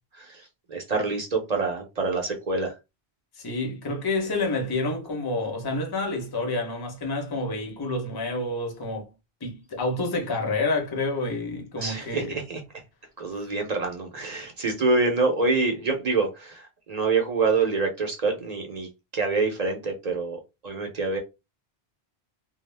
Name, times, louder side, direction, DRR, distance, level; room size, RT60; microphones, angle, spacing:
voice 1, 0.2-2.7 11.8-12.6 13.2-20.4 20.6-21.2, right 3 dB, 45° right, 0.6 m, -26 dB
voice 2, 3.4-9.1 9.4-12.4 13.3-13.5, left 2 dB, 25° left, 0.6 m, -29 dB
2.3 x 2.0 x 3.2 m
omnidirectional pair, 1.1 m